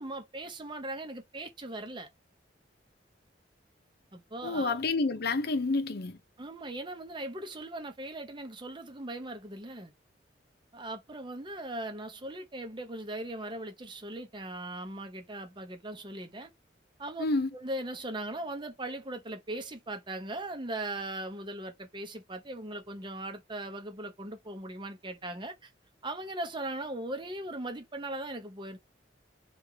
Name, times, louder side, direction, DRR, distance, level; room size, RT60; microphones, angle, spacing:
voice 1, 0.0-2.1 4.1-4.8 6.4-9.9 10.7-16.5 17.0-17.2 17.5-25.7 26.0-28.8, right 1 dB, 25° right, 0.7 m, -39 dB
voice 2, 4.4-6.2 17.2-17.5, left 3 dB, 60° left, 0.6 m, -29 dB
3.4 x 2.4 x 3.2 m
head